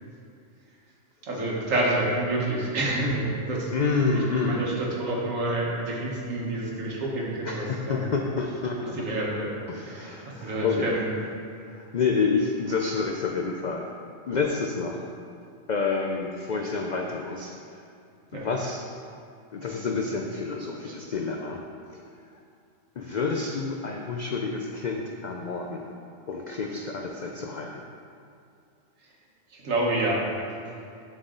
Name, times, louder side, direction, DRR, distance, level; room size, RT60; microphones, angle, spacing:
voice 1, 1.2-3.7 4.3-8.0 9.0-9.6 9.9-10.1 10.4-11.1 18.3-18.5 29.5-30.2, right 1 dB, 80° right, -3 dB, 1.7 m, -28 dB
voice 2, 3.7-4.7 7.4-9.0 9.7-10.9 11.6-13.9 14.3-15.0 15.7-17.8 18.3-18.8 19.5-21.6 21.9-22.0 23.0-25.9 26.3-27.8, left 4 dB, 75° left, 1 dB, 0.4 m, -28 dB
11.0 x 4.2 x 3.8 m, 2.5 s
omnidirectional pair, 1.3 m